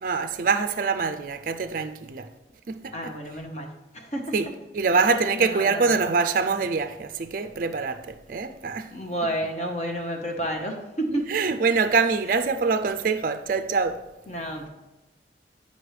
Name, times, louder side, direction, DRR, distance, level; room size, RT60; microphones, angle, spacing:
voice 1, 0.0-2.3 2.7-3.2 4.3-4.5 4.7-8.9 11.1-14.0, right 4 dB, 50° right, 0.4 m, -25 dB
voice 2, 2.9-4.3 4.9-5.0 5.3-5.9 8.9-11.3 14.3-14.7, right 1 dB, 40° left, 1.0 m, -31 dB
9.6 x 5.3 x 3.3 m
head